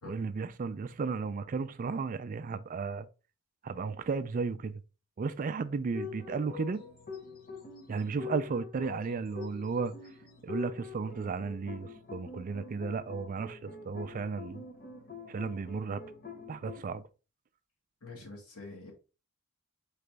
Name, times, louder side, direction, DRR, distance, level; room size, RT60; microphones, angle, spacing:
voice 1, 0.1-3.1 3.6-4.8 5.2-6.8 7.9-9.9 10.4-14.7 15.3-16.0 16.5-17.0, right 4 dB, 40° right, 0.3 m, -34 dB
sound 1, 5.9-16.8, left 5 dB, 40° left, 0.8 m, -45 dB
voice 2, 18.0-18.9, left 3 dB, 85° left, 1.8 m, -46 dB
4.1 x 3.8 x 3.4 m
head